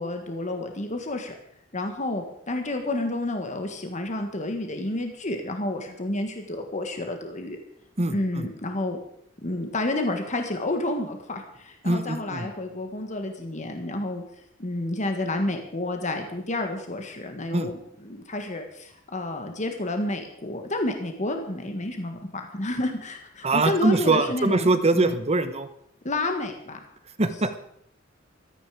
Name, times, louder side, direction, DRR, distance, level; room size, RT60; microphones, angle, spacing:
voice 1, 0.0-1.3 1.7-7.6 8.1-9.0 9.4-14.2 14.6-25.1 26.0-26.8, left 2 dB, 40° left, 5 dB, 1.6 m, -30 dB
voice 2, 8.0-8.5 11.8-12.5 17.5-17.7 23.4-25.7 27.2-27.6, right 2 dB, 30° right, 10 dB, 1.1 m, -23 dB
15.5 x 13.5 x 5.0 m, 0.70 s
head